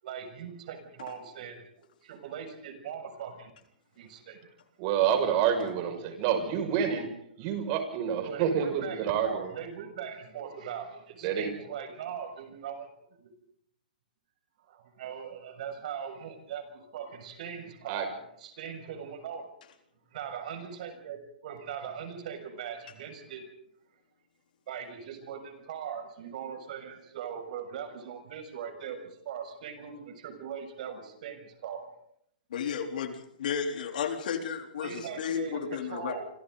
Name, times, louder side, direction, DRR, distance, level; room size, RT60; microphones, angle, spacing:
voice 1, 0.0-3.5 3.9-4.5 5.8-6.8 8.2-12.9 13.2-13.3 14.6-19.5 20.1-23.5 24.7-31.9 34.8-36.3, right 7 dB, 60° right, 6 dB, 6.8 m, -40 dB
voice 2, 4.8-9.5 11.2-11.5 17.9-18.1, right 8 dB, 40° right, 6 dB, 6.2 m, -28 dB
voice 3, 32.5-36.2, left 7 dB, 65° left, 4 dB, 3.8 m, -33 dB
28.0 x 26.5 x 4.0 m, 0.72 s
hypercardioid pair, 135°, 5 cm